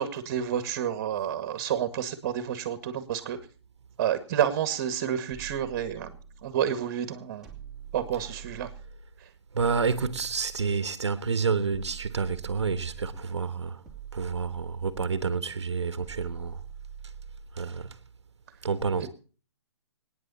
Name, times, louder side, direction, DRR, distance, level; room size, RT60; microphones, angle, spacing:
voice 1, 0.0-3.4 4.0-6.1 6.4-7.5 7.9-8.7 19.0-19.1, right 9 dB, 40° right, 1.9 m, -29 dB
sound 1, 5.3-6.6 7.4-9.1 9.6-11.0 11.7-13.3 13.9-15.3 16.0-17.6, right 7 dB, 5° right, 3.2 m, -44 dB
voice 2, 9.5-13.8 14.1-16.6 17.5-18.0 18.6-19.1, right 5 dB, 80° right, 1.2 m, -29 dB
25.5 x 9.6 x 4.2 m
hypercardioid pair, 140°, 14 cm